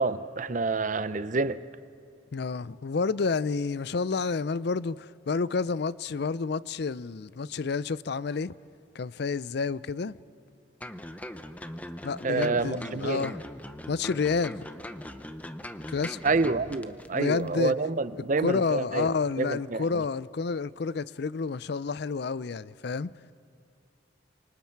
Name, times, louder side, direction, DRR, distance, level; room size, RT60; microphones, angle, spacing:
voice 1, 0.0-1.6 12.2-13.3 16.2-20.0, right 3 dB, 40° right, 0.6 m, -28 dB
voice 2, 2.3-8.5 8.9-10.2 12.0-13.4 13.9-14.6 15.9-16.2 17.1-17.7 18.4-23.1, left 4 dB, 55° left, 0.4 m, -29 dB
sound 1, 10.8-17.1 17.4-17.5, left 1 dB, 10° left, 0.7 m, -40 dB
30.0 x 26.5 x 4.6 m
head